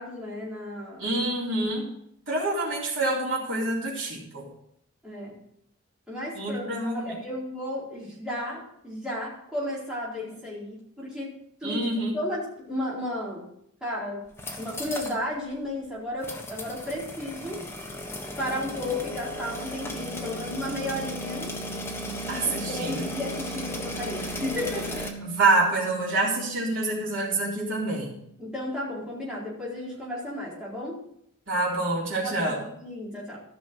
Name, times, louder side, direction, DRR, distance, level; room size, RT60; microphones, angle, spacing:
voice 1, 0.0-1.1 5.0-5.4 6.1-11.3 11.6-11.8 12.1-13.5 13.8-14.3 14.6-17.6 18.4-21.5 22.0-25.1 28.4-31.0 32.2-33.4, left 1 dB, 5° right, -8 dB, 4.4 m, -34 dB
voice 2, 1.0-1.9 2.3-4.5 6.4-7.1 11.6-12.1 22.3-23.0 25.2-28.1 31.5-32.6, right 2 dB, 65° right, -4 dB, 3.9 m, -26 dB
sound 1, 14.3-15.2 15.5-15.6 16.2-25.1, left 1 dB, 10° left, 1.3 m, -36 dB
sound 2, 18.3-28.4, right 5 dB, 70° left, 4.1 m, -42 dB
14.5 x 6.2 x 6.5 m, 0.73 s
head